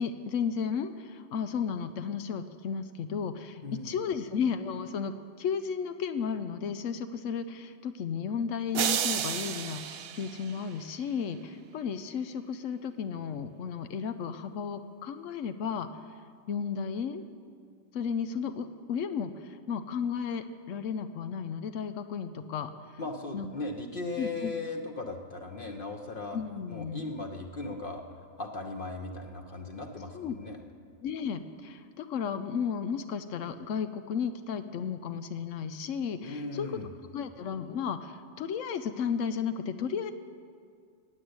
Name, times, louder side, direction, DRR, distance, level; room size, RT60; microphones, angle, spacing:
voice 1, 0.0-15.9 16.5-17.2 17.9-23.0 23.3-23.5 24.2-24.5 26.3-27.1 30.1-30.4 31.0-36.7 37.1-40.1, left 6 dB, 90° left, 9 dB, 1.0 m, -34 dB
voice 2, 3.6-3.9 23.0-26.4 26.7-28.0 28.4-30.6 36.2-36.9, left 2 dB, 50° left, 2 dB, 1.1 m, -37 dB
sound 1, 8.7-11.1, right 9 dB, 60° right, 0.8 m, -32 dB
16.5 x 7.7 x 9.6 m, 2.2 s
omnidirectional pair, 1.3 m